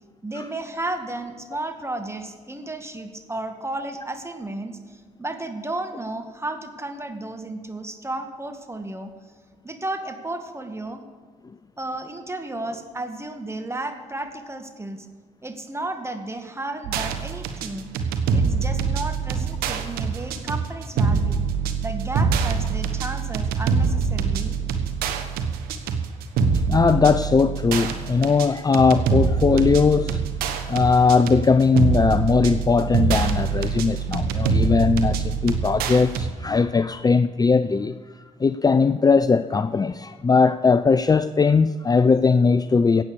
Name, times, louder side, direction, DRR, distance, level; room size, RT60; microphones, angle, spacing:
voice 1, 0.2-9.1 9.6-11.0 11.8-15.1 15.4-17.9 18.3-21.4 21.8-24.6, right 2 dB, 15° right, 6 dB, 2.0 m, -33 dB
sound 1, 16.8-36.3, right 5 dB, 80° right, 1.2 m, -24 dB
voice 2, 26.7-30.2 30.7-38.0 38.4-43.0, left 4 dB, 25° left, 13 dB, 0.5 m, -19 dB
16.0 x 8.8 x 7.0 m, 1.5 s
hypercardioid pair, 50°, 15 cm